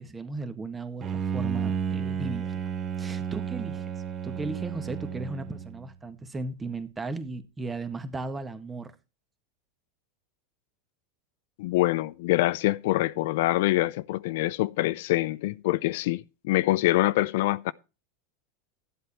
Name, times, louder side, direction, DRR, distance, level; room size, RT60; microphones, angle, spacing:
voice 1, 0.0-2.7 3.0-3.8 4.2-8.9, right 3 dB, 15° right, 1.6 m, -36 dB
Bowed string instrument, 1.0-6.0, right 7 dB, 30° right, 1.3 m, -32 dB
voice 2, 11.6-17.7, left 17 dB, 70° left, 0.5 m, -25 dB
12.5 x 7.9 x 4.3 m
hypercardioid pair, 110°, 0 cm